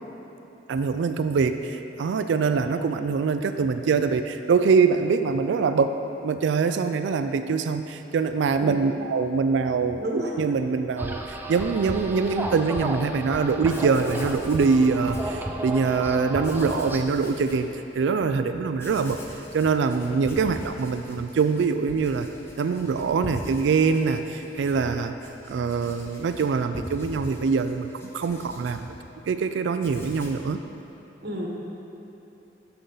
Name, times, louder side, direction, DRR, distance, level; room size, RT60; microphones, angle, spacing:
voice 1, 0.7-5.9 6.2-19.2 19.5-22.3 22.6-25.1 25.5-27.9 28.1-28.9 29.3-30.6, right 5 dB, 80° right, 9 dB, 0.3 m, -24 dB
voice 2, 8.6-8.9 9.9-10.3 31.2-31.5, right 1 dB, 65° right, -1 dB, 1.2 m, -31 dB
sound 1, 11.0-17.0, right 1 dB, 10° right, 0.5 m, -33 dB
Writing, 13.4-13.5 13.6-15.8 16.4-17.7 18.1-18.2 18.7-29.4 29.7-30.5, equal, 15° left, 1.0 m, -42 dB
10.0 x 6.8 x 3.9 m, 3.0 s
head